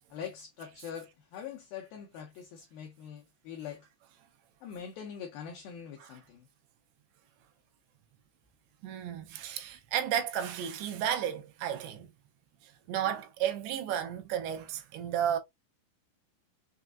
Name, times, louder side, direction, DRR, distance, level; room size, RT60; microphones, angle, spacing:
voice 1, 0.1-3.9 4.6-6.5, left 8 dB, 85° left, 2.1 m, -43 dB
voice 2, 8.8-12.1 12.6-15.4, right 10 dB, 80° right, 2.9 m, -33 dB
6.7 x 2.3 x 2.4 m
omnidirectional pair, 5.1 m